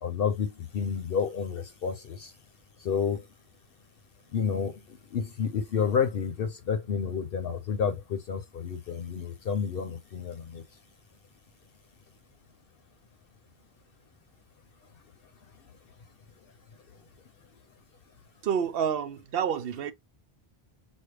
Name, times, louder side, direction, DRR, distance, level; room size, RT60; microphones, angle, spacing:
voice 1, 0.0-2.3 2.8-3.3 4.3-10.6, left 6 dB, 70° left, 0.9 m, -30 dB
voice 2, 18.4-19.9, right 8 dB, 70° right, 0.8 m, -28 dB
6.2 x 2.2 x 3.3 m
omnidirectional pair, 1.0 m